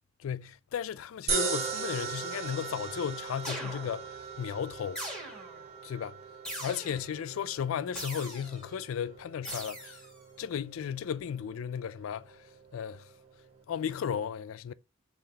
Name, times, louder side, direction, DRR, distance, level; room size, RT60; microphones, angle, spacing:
voice 1, 0.2-4.1 4.4-5.0 5.8-6.2 6.6-10.0 10.4-12.4 12.7-13.1 13.7-14.7, left 8 dB, 90° left, 0.3 m, -35 dB
sound 1, 1.3-13.6, right 5 dB, 35° right, 1.6 m, -39 dB
sound 2, 3.4-4.2 4.9-5.7 6.4-7.2 7.9-8.7 9.4-10.1, equal, 5° left, 2.0 m, -41 dB
5.5 x 3.4 x 2.8 m
head